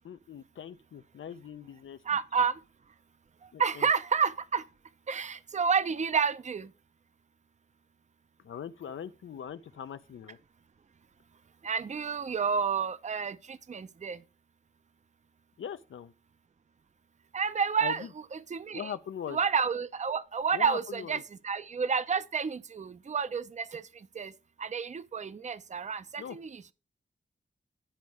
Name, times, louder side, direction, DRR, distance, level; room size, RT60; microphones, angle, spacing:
voice 1, 0.0-2.2 3.5-3.9 8.4-10.4 15.6-16.1 17.8-18.1 18.7-19.4 20.5-21.2 26.2-26.4, left 8 dB, 85° left, 0.5 m, -41 dB
voice 2, 2.1-2.6 3.4-4.7 5.1-6.7 11.6-14.2 17.3-18.0 18.3-18.9 19.3-21.2 21.4-24.3 24.6-26.7, right 6 dB, 35° right, 0.5 m, -30 dB
10.0 x 5.2 x 4.6 m
wide cardioid pair, 110°, 20 cm